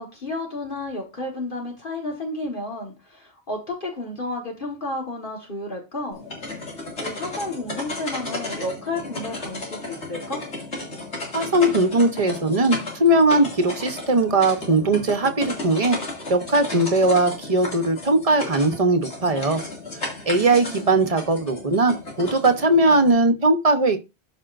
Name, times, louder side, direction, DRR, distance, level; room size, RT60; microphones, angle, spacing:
voice 1, 0.0-6.2 7.0-10.4 20.4-20.9, left 2 dB, 50° left, 0 dB, 1.8 m, -32 dB
sound 1, 6.1-23.1, left 2 dB, 85° left, 2.8 m, -34 dB
voice 2, 11.3-16.0 16.3-19.6 20.3-24.0, right 2 dB, 35° right, 8 dB, 1.0 m, -19 dB
12.5 x 5.3 x 2.5 m, 0.27 s
omnidirectional pair, 1.1 m